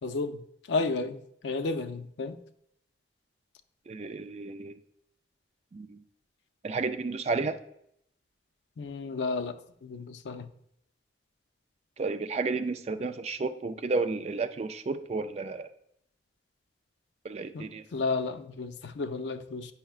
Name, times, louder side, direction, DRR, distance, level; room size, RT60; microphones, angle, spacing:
voice 1, 0.0-0.4 0.7-2.4 8.8-10.5 17.5-17.7 17.9-19.7, left 3 dB, 80° left, 10 dB, 0.5 m, -32 dB
voice 2, 3.9-4.8 5.7-6.0 6.6-7.6 12.0-15.7 17.2-17.8, right 3 dB, 35° right, 9 dB, 0.3 m, -32 dB
8.9 x 5.6 x 2.4 m, 0.74 s
head